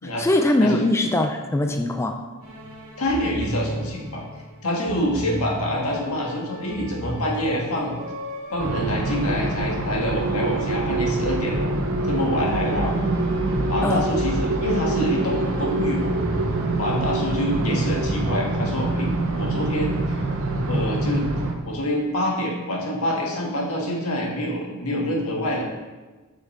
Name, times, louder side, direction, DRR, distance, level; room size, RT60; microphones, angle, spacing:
voice 1, 0.0-2.2 12.8-12.9 13.8-14.0, left 1 dB, 10° left, 3 dB, 0.4 m, -22 dB
sound 1, 2.4-18.4, right 1 dB, 40° right, 2.0 m, -35 dB
voice 2, 3.0-4.2 4.6-8.0 8.5-11.7 12.1-12.9 13.7-16.1 16.8-20.0 20.7-21.2 21.6-25.6, equal, 85° left, -2 dB, 1.6 m, -26 dB
sound 2, 8.6-21.5, right 2 dB, 65° right, 0.8 m, -25 dB
7.9 x 5.8 x 3.2 m, 1.2 s
head